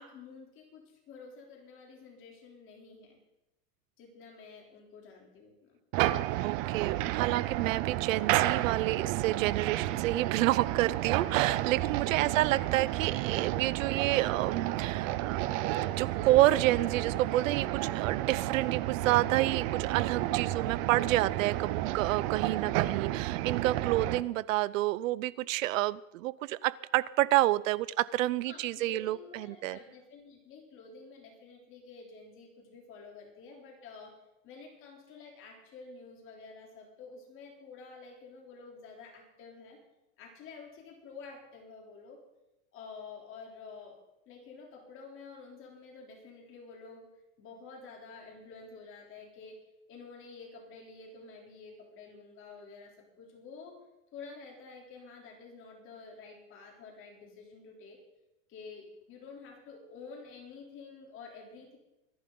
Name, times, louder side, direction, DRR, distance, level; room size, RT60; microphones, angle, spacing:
voice 1, 0.0-3.2 4.0-5.7 12.0-12.5 22.5-23.0 28.5-34.2 34.4-39.8 40.2-42.2 42.7-43.9 44.3-47.1 47.4-49.6 49.9-53.8 54.1-58.0 58.5-61.8, left 4 dB, 30° left, 0 dB, 3.4 m, -50 dB
sound 1, 5.9-24.2, right 15 dB, 30° right, 0.4 m, -31 dB
voice 2, 6.4-15.7 16.0-29.8, right 16 dB, 75° right, 21 dB, 0.7 m, -29 dB
24.0 x 11.5 x 3.9 m, 0.94 s
supercardioid pair, 155°, 40 cm